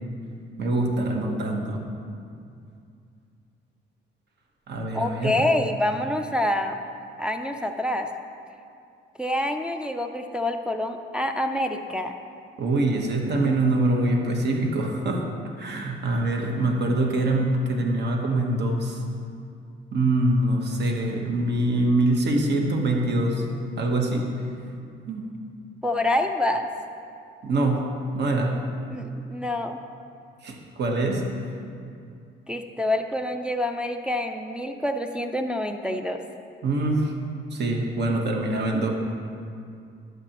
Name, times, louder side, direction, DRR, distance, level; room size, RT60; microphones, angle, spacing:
voice 1, 0.6-1.8 4.7-5.4 12.6-15.3 15.6-19.0 19.9-23.4 23.8-24.5 25.1-25.3 27.4-27.8 28.1-28.6 30.4-31.2 36.6-37.1 37.5-38.9, right 2 dB, 60° right, 1 dB, 1.2 m, -24 dB
voice 2, 4.9-6.8 7.2-8.1 9.2-12.1 25.8-26.7 28.9-29.8 32.5-36.2, left 1 dB, 5° right, 3 dB, 0.4 m, -26 dB
11.0 x 6.7 x 3.0 m, 2.4 s
cardioid pair, 90°, 20 cm